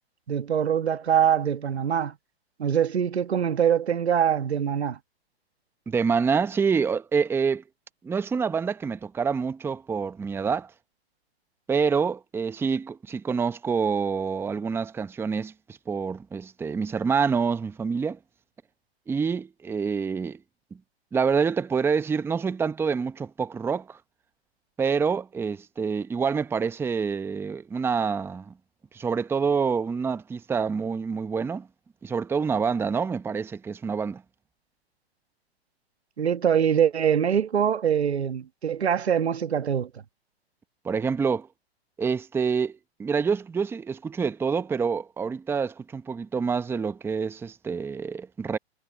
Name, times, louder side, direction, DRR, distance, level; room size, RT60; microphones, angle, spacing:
voice 1, 0.3-2.1 2.6-5.0 36.2-39.9, right 8 dB, 85° right, 1.4 m, -23 dB
voice 2, 5.9-7.6 8.0-10.7 11.7-15.5 15.9-18.2 19.1-20.4 21.1-24.0 24.8-28.5 28.9-31.7 32.0-34.2 40.8-41.5 42.0-48.6, right 5 dB, 5° right, 0.8 m, -27 dB
hypercardioid pair, 130°, 32 cm